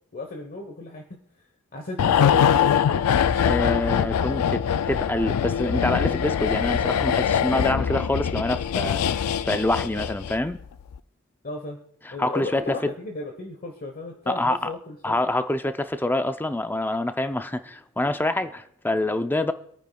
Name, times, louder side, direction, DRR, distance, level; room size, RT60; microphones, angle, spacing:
voice 1, 0.1-1.4 1.7-3.1 11.4-11.8 12.1-15.2, left 3 dB, 40° left, 3 dB, 1.1 m, -35 dB
sound 1, 2.0-10.5 10.8-11.0, left 8 dB, 85° left, 0.4 m, -23 dB
voice 2, 3.4-10.6 12.1-12.8 14.3-14.7 15.0-19.5, left 1 dB, 10° left, 9 dB, 0.5 m, -26 dB
25.5 x 9.3 x 2.3 m, 0.71 s
head